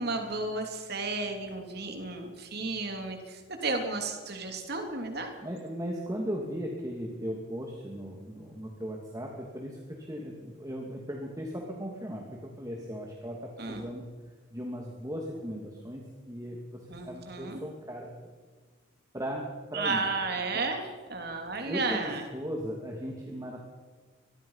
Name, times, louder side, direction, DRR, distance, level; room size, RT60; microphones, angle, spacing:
voice 1, 0.0-5.3 13.6-13.8 16.9-17.6 19.7-22.2, right 3 dB, 50° right, 4 dB, 3.1 m, -33 dB
voice 2, 5.4-14.1 14.5-18.2 19.1-20.0 21.7-23.7, equal, 15° right, 0 dB, 2.5 m, -37 dB
24.0 x 21.0 x 5.7 m, 1.4 s
head